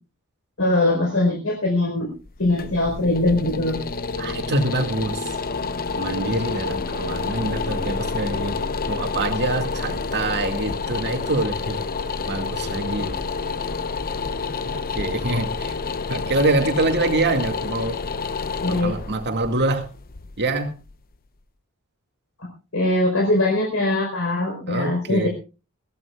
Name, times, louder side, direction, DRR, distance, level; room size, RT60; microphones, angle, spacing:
voice 1, 0.6-2.1 2.4-3.8 18.6-18.9 22.7-25.3, left 2 dB, 70° left, 1 dB, 4.4 m, -21 dB
sound 1, 2.2-21.2, left 4 dB, 40° left, 0.8 m, -29 dB
voice 2, 4.2-5.3 5.9-8.6 8.9-11.8 12.2-13.2 14.7-15.8 16.1-18.0 18.7-19.9 20.4-20.7 24.7-25.3, right 2 dB, 50° right, 5 dB, 2.1 m, -25 dB
21.5 x 15.5 x 2.4 m, 0.32 s
head